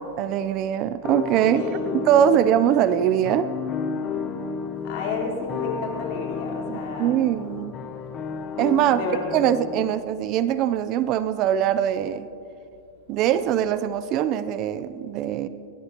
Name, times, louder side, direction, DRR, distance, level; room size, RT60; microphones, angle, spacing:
voice 1, 0.2-3.5 6.7-7.7 8.6-9.0 9.3-12.3 13.1-15.5, right 10 dB, 40° right, 14 dB, 0.5 m, -22 dB
sound 1, 1.0-10.0, left 6 dB, 25° left, 1.0 m, -32 dB
voice 2, 1.5-1.9 4.8-7.2 8.8-9.4, left 4 dB, 50° left, -2 dB, 4.0 m, -31 dB
21.5 x 17.5 x 3.0 m, 2.7 s
supercardioid pair, 140°, 0 cm